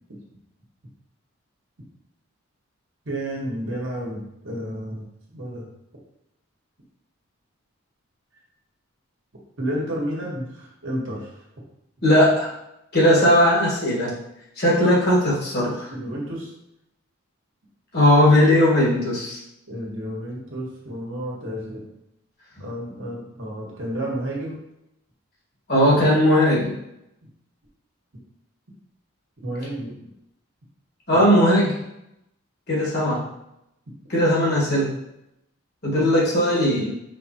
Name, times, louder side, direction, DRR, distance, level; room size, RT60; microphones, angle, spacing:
voice 1, 3.0-5.0 5.3-5.6 9.6-11.3 15.9-16.5 19.7-21.9 22.6-24.6 29.4-29.9 31.1-31.3, right 1 dB, 65° right, -3 dB, 1.4 m, -31 dB
voice 2, 12.0-12.5 12.9-14.1 14.6-15.9 17.9-19.4 25.7-26.8 31.1-31.8 32.7-33.3 34.1-34.9 35.8-36.9, left 1 dB, 50° left, -5 dB, 1.6 m, -18 dB
5.2 x 3.4 x 2.9 m, 0.84 s
head